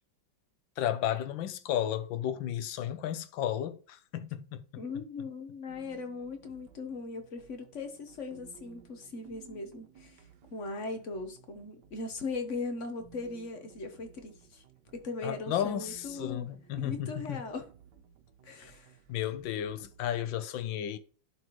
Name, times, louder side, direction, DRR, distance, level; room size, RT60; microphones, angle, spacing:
voice 1, 0.8-4.9 15.2-17.4 18.6-18.7 19.1-21.0, left 10 dB, 75° left, 1.3 m, -33 dB
voice 2, 4.8-14.6 14.9-16.5 16.8-17.7 18.4-19.0, left 3 dB, 45° left, 1.1 m, -39 dB
sound 1, 5.7-20.2, right 8 dB, 65° right, 1.4 m, -58 dB
11.0 x 4.2 x 3.1 m
omnidirectional pair, 2.2 m